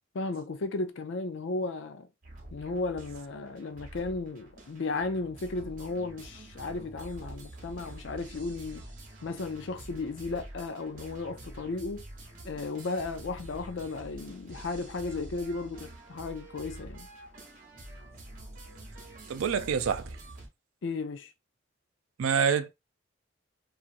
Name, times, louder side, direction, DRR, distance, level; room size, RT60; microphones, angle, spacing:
voice 1, 0.1-2.1 2.5-8.8 9.2-12.0 12.4-17.1 20.8-21.3, left 3 dB, 65° left, 0.4 m, -35 dB
sound 1, 2.2-20.5, right 1 dB, 40° right, 0.8 m, -47 dB
voice 2, 19.3-20.2 22.2-22.7, right 7 dB, 90° right, 0.4 m, -27 dB
2.9 x 2.4 x 2.4 m
head